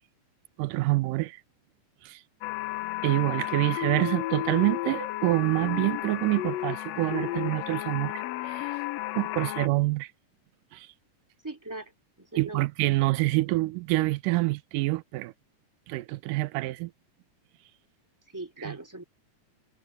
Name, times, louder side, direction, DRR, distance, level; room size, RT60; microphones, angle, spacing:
voice 1, 0.6-1.4 2.0-2.2 3.0-8.8 9.2-10.1 10.7-10.9 12.4-15.3 15.9-16.9 18.6-18.7, right 20 dB, 90° right, 2.2 m, -27 dB
sound 1, 2.4-9.7, left 16 dB, 85° left, 1.4 m, -33 dB
voice 2, 11.4-11.9 12.2-12.7 18.3-19.0, right 2 dB, 5° right, 2.8 m, -39 dB
omnidirectional pair, 3.7 m